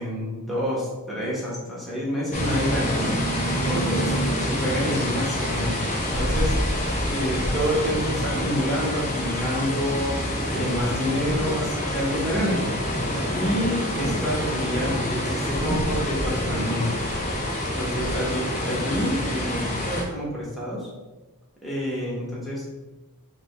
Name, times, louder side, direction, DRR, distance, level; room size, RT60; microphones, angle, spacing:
voice 1, 0.0-3.1 3.7-4.1 4.4-5.8 6.2-6.5 7.1-10.2 10.5-12.6 13.3-16.9 17.7-20.9 21.6-22.6, equal, ahead, -7 dB, 1.1 m, -28 dB
sound 1, 2.3-20.0, equal, 30° left, 0.9 m, -26 dB
4.9 x 2.2 x 4.7 m, 1.2 s
head